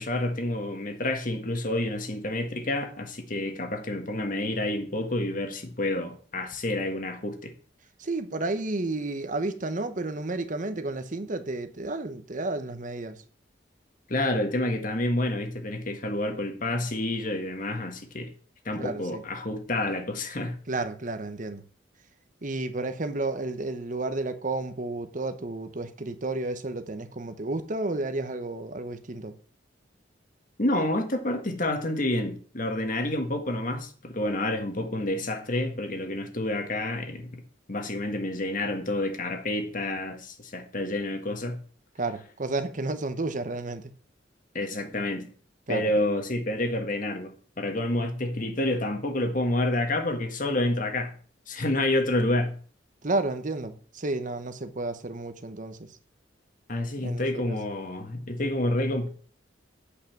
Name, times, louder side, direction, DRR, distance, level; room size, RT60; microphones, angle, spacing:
voice 1, 0.0-7.5 14.1-18.3 18.6-20.6 30.6-37.4 37.7-41.6 44.5-45.3 45.7-51.1 51.5-52.5 56.7-59.1, left 1 dB, 45° left, 1.6 m, -29 dB
voice 2, 8.0-13.2 18.7-19.2 20.7-21.6 22.4-29.3 42.0-43.9 45.7-46.0 53.0-56.0 57.0-57.6, right 2 dB, 45° right, 1.0 m, -32 dB
8.4 x 5.7 x 7.2 m
head